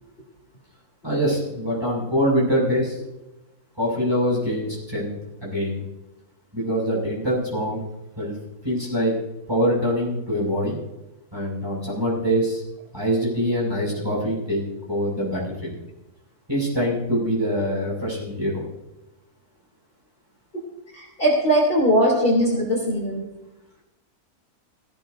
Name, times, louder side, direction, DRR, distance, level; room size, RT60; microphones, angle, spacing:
voice 1, 1.0-3.0 3.8-5.1 5.4-5.8 6.5-7.8 8.2-8.4 8.6-9.1 9.5-10.8 11.3-12.6 12.9-14.6 14.9-15.7 16.5-18.6, equal, 15° right, -5 dB, 6.5 m, -24 dB
voice 2, 20.9-23.3, equal, 35° left, -3 dB, 3.3 m, -20 dB
17.5 x 17.0 x 2.7 m, 0.95 s
omnidirectional pair, 1.6 m